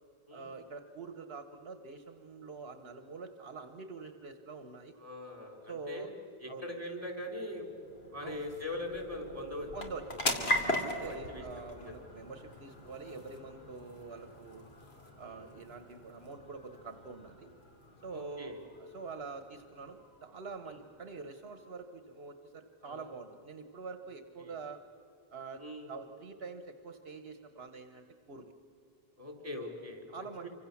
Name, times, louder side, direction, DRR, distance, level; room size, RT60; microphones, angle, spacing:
voice 1, 0.3-5.0 5.7-6.1 6.5-6.7 8.2-8.4 9.7-14.7 15.2-17.5 18.0-24.8 25.3-28.5 30.1-30.5, right 4 dB, 70° right, 8 dB, 1.3 m, -45 dB
voice 2, 5.0-6.1 6.4-7.7 8.1-9.7 10.8-11.4 11.8-12.0 15.2-15.5 18.1-18.6 20.6-20.8 22.8-23.1 24.4-24.6 25.6-25.9 29.2-30.0 30.4-30.5, left 1 dB, 35° right, 3 dB, 4.5 m, -41 dB
sound 1, 6.8-21.7, left 1 dB, 80° left, 2.8 m, -41 dB
27.5 x 25.5 x 7.1 m, 2.8 s
omnidirectional pair, 1.1 m